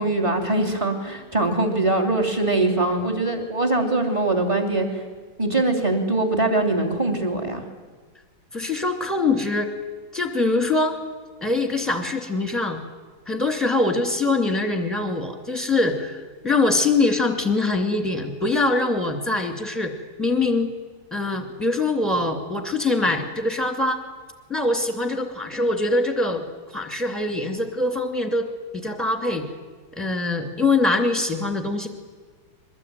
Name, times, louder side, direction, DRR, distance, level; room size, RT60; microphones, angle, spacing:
voice 1, 0.0-5.0 5.4-7.6, right 2 dB, 15° right, 2 dB, 2.9 m, -22 dB
voice 2, 8.5-9.7 10.1-11.0 11.4-12.8 13.3-19.9 20.2-20.7 21.1-24.0 24.5-28.5 28.7-29.5 29.9-31.9, left 2 dB, ahead, 6 dB, 2.4 m, -23 dB
23.0 x 20.5 x 9.4 m, 1.5 s
omnidirectional pair, 2.2 m